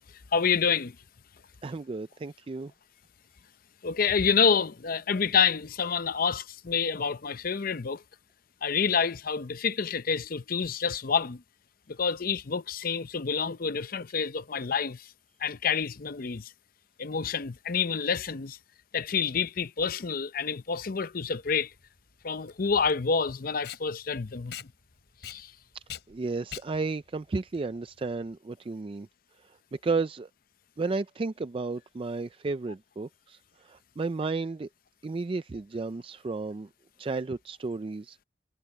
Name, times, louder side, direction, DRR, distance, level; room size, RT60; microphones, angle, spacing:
voice 1, 0.1-1.0 3.8-8.0 8.6-11.4 11.9-15.1 15.4-16.5 17.0-18.6 18.9-21.7 22.2-24.6 25.2-25.5, left 6 dB, 50° left, 0.7 m, -28 dB
voice 2, 1.6-2.7 26.1-29.1 29.4-30.3 30.8-34.7 35.0-36.7 37.0-38.2, right 3 dB, 30° right, 0.4 m, -33 dB
Packing tape duct tape, 20.9-28.4, left 9 dB, 70° left, 5.1 m, -45 dB
head